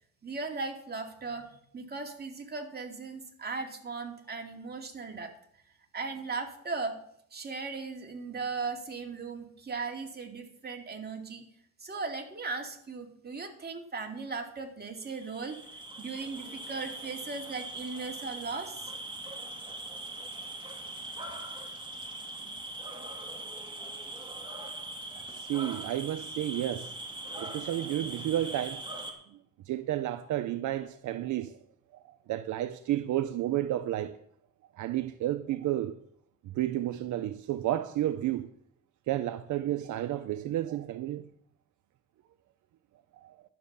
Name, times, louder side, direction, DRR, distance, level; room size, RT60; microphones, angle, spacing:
voice 1, 0.2-5.3 5.9-7.0 7.3-11.4 11.8-15.6 16.0-18.9, right 4 dB, 35° right, 2.5 m, -37 dB
sound 1, 15.0-29.1, right 2 dB, 15° right, 2.9 m, -41 dB
voice 2, 25.1-26.9 27.4-28.8 29.7-31.6 31.9-34.1 34.7-36.0 36.4-38.5 39.1-41.2 43.2-43.4, right 13 dB, 75° right, 0.7 m, -32 dB
12.0 x 7.6 x 6.9 m
cardioid pair, 90°, 30 cm